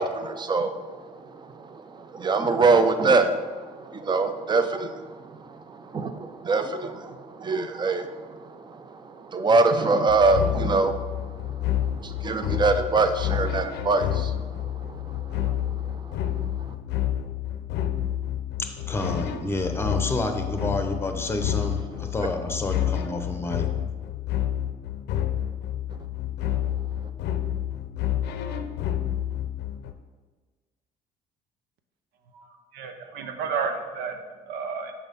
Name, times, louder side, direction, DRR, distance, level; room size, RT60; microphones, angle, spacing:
voice 1, 0.0-16.4, right 3 dB, 25° right, 9 dB, 0.5 m, -25 dB
sound 1, 10.1-29.9, left 11 dB, 80° left, 0.6 m, -29 dB
voice 2, 18.9-23.7, left 2 dB, 15° left, 5 dB, 0.8 m, -29 dB
voice 3, 32.7-34.2 34.5-34.9, right 5 dB, 85° right, 6 dB, 0.8 m, -31 dB
6.3 x 4.4 x 5.2 m, 1.4 s
cardioid pair, 110°, 17 cm